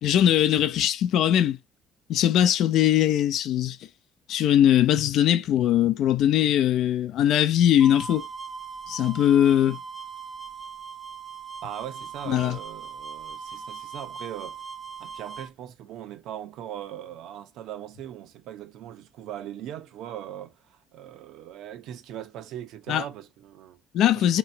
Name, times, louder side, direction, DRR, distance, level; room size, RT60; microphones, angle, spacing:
voice 1, 0.0-1.6 2.1-3.8 4.3-8.3 8.9-9.8 12.3-12.6 22.9-23.0 23.9-24.4, left 11 dB, 65° left, 0.4 m, -21 dB
sound 1, 7.8-15.5, right 6 dB, 10° right, 0.5 m, -39 dB
voice 2, 11.6-14.6 15.0-23.8 24.1-24.4, right 11 dB, 75° right, 0.8 m, -40 dB
4.4 x 3.0 x 2.7 m
cardioid pair, 140°, 0 cm